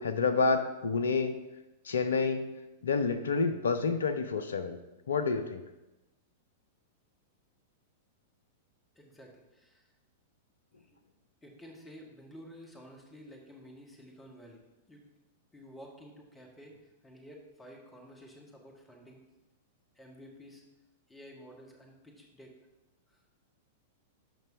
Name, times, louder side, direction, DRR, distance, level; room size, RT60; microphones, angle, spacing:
voice 1, 0.0-1.3 1.8-2.4 2.8-4.8 5.1-5.6, left 4 dB, 65° left, 10 dB, 0.6 m, -28 dB
voice 2, 8.9-9.9 10.8-10.9 11.4-14.6 14.9-15.0 15.5-19.2 19.9-20.6 21.1-22.5 23.1-23.2, equal, 10° left, 0 dB, 1.5 m, -52 dB
12.0 x 5.4 x 2.7 m, 1.0 s
figure-of-eight pair, 95°, 0 cm